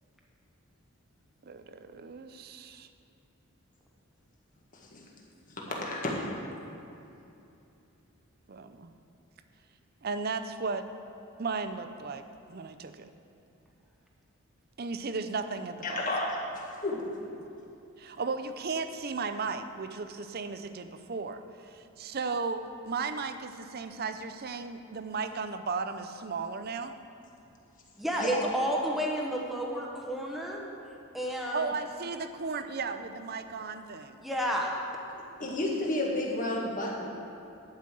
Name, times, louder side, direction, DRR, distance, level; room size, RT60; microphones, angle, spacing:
voice 1, 1.4-2.9 5.7-5.8 8.5-8.9 10.0-10.9 11.4-13.1 14.8-16.1 18.0-27.0 31.3-34.3, right 4 dB, 45° right, 9 dB, 0.5 m, -35 dB
voice 2, 4.7-5.0 5.5-5.6 5.8-6.3 15.8-16.3 16.8-17.1 28.2-28.3 35.4-37.2, left 1 dB, 40° left, -2 dB, 1.8 m, -31 dB
voice 3, 28.0-30.6 31.1-31.7 34.2-34.7, equal, ahead, -2 dB, 1.1 m, -31 dB
11.5 x 5.7 x 7.6 m, 2.8 s
head